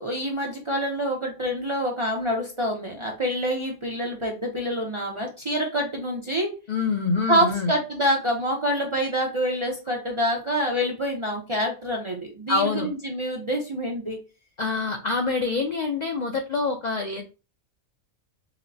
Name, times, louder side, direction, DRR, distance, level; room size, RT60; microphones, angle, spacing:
voice 1, 0.0-6.5 7.3-14.2, equal, 40° right, -1 dB, 0.4 m, -26 dB
voice 2, 6.7-7.7 12.5-12.9 14.6-17.2, left 4 dB, 85° left, 3 dB, 0.3 m, -26 dB
5.8 x 2.1 x 2.6 m, 0.32 s
omnidirectional pair, 1.4 m